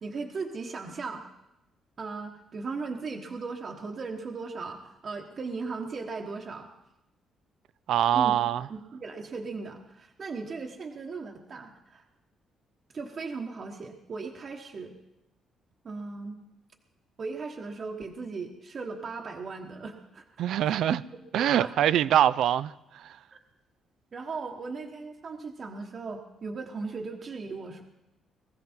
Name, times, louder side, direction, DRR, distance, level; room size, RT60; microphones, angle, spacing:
voice 1, 0.0-1.2 2.0-6.7 8.1-8.3 8.7-12.0 12.9-15.0 15.8-16.4 17.2-20.3 20.6-21.0 21.3-21.7 23.3-23.4 24.1-27.8, right 4 dB, 35° right, 1.2 m, -37 dB
voice 2, 7.9-8.7 20.4-21.0 21.3-23.2, right 10 dB, 75° right, 0.5 m, -24 dB
20.0 x 15.0 x 4.4 m
cardioid pair, 140°, 0 cm